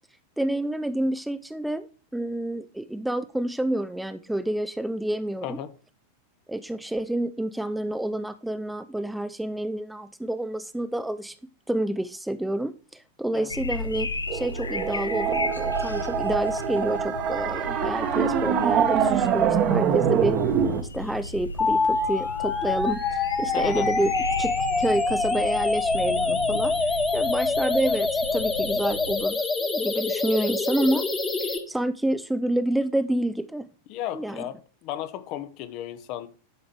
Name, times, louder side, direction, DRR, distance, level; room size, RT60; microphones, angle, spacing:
voice 1, 0.4-1.9 2.1-5.6 6.5-11.4 11.7-20.4 20.8-24.1 24.4-26.7 27.1-31.0 31.4-33.7 34.1-34.4, right 1 dB, 5° right, 0.4 m, -28 dB
voice 2, 5.4-5.7 13.3-13.5 23.5-23.9 33.9-36.3, left 12 dB, 40° left, 0.8 m, -34 dB
sound 1, 13.5-29.3, left 3 dB, 75° left, 0.6 m, -35 dB
sound 2, 14.3-20.8, right 8 dB, 35° right, 1.1 m, -24 dB
sound 3, 21.6-31.6, left 3 dB, 15° left, 1.3 m, -25 dB
11.0 x 5.0 x 4.5 m
figure-of-eight pair, 90°, 0 cm